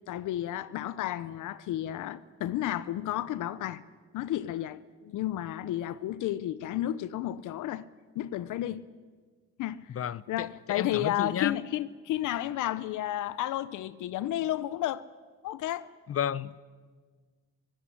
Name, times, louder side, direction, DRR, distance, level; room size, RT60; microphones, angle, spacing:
voice 1, 0.1-3.8 4.1-7.8 8.1-8.9 9.6-10.0 10.3-15.0 15.4-15.9, left 13 dB, 80° left, 0.8 m, -32 dB
voice 2, 10.0-11.6 16.1-16.6, left 9 dB, 50° left, 0.8 m, -32 dB
22.0 x 16.5 x 10.0 m
cardioid pair, 90°, 30 cm